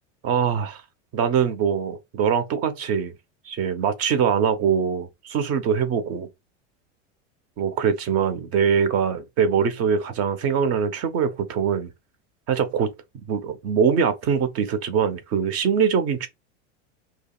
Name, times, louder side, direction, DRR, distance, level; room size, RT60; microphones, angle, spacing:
voice 1, 0.2-0.8 1.1-3.1 3.4-6.3 7.6-11.9 12.5-12.9 13.3-16.3, right 7 dB, 40° right, 0.8 m, -23 dB
4.8 x 2.9 x 2.3 m
supercardioid pair, 125°, 36 cm